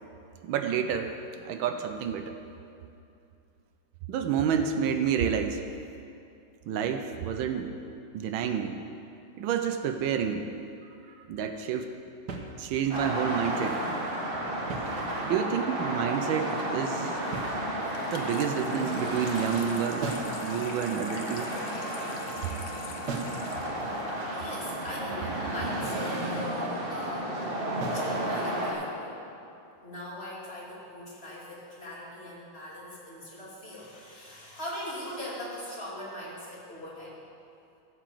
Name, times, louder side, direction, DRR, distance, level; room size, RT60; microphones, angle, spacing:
voice 1, 0.4-1.1 1.4-2.4 4.1-5.6 6.7-7.8 8.1-8.8 9.4-10.5 11.3-11.9 12.6-13.8 15.2-17.2 18.1-20.1 20.4-21.5, right 8 dB, 75° right, 6 dB, 1.4 m, -29 dB
sound 1, 12.3-13.1 14.5-15.5 17.3-18.1 20.0-20.4 23.1-23.5 25.8-26.2 27.8-28.2, right 4 dB, 55° right, 1.4 m, -37 dB
sound 2, 12.9-28.7, right 1 dB, 30° right, 1.4 m, -33 dB
Water tap faucet / Sink (filling or washing), 17.8-24.9, left 4 dB, 85° left, 1.8 m, -44 dB
voice 2, 24.3-27.6 27.9-29.2 29.8-37.2, left 1 dB, 30° left, -7 dB, 2.8 m, -40 dB
14.0 x 5.0 x 7.6 m, 2.6 s
omnidirectional pair, 2.3 m